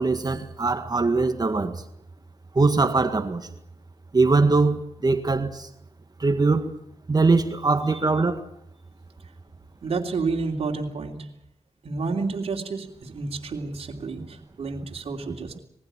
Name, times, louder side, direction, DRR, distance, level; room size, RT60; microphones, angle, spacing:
voice 1, 0.0-1.8 2.6-3.5 4.1-5.7 6.2-6.7 7.1-8.5, right 3 dB, 40° right, 1.8 m, -22 dB
voice 2, 9.8-11.3 11.8-15.6, right 4 dB, 70° right, 3.1 m, -30 dB
21.5 x 16.0 x 8.8 m
cardioid pair, 65°, 11 cm